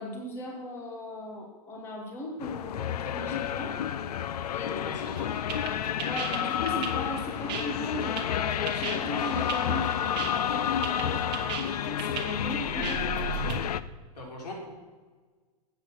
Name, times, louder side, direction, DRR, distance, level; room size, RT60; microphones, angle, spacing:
voice 1, 0.0-3.8 4.5-4.9 5.2-5.3 6.0-13.4, left 1 dB, 10° left, 1 dB, 1.3 m, -38 dB
sound 1, 2.4-13.8, left 9 dB, 75° left, 0.6 m, -30 dB
voice 2, 4.8-5.3 14.1-14.5, left 2 dB, 90° left, 0 dB, 4.8 m, -40 dB
sound 2, 5.0-13.6, right 8 dB, 20° right, 1.4 m, -37 dB
12.5 x 8.3 x 6.3 m, 1.4 s
supercardioid pair, 170°, 20 cm